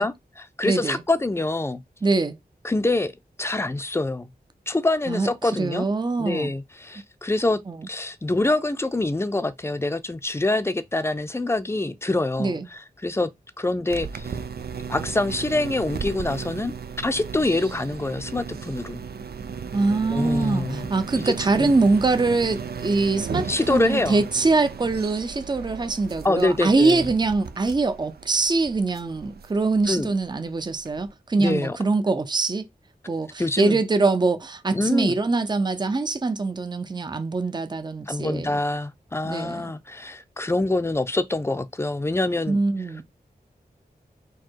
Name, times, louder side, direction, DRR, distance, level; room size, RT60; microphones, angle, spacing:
voice 1, 0.0-1.8 2.6-3.1 3.4-4.3 4.7-5.9 6.2-7.6 7.9-13.3 13.6-14.3 14.9-19.0 20.1-20.9 21.2-21.7 23.5-24.2 26.2-27.1 29.9-30.1 31.4-31.8 33.4-33.8 34.7-35.2 38.1-42.6, left 2 dB, 15° left, 0.6 m, -25 dB
voice 2, 0.7-1.0 2.0-2.4 5.1-6.5 7.7-7.8 12.4-12.7 19.7-32.7 33.1-38.6 39.2-39.7 42.5-43.0, right 3 dB, 25° right, 0.6 m, -23 dB
sound 1, 13.9-31.1, right 6 dB, 80° right, 0.5 m, -36 dB
4.7 x 2.2 x 4.5 m
wide cardioid pair, 100°, 16 cm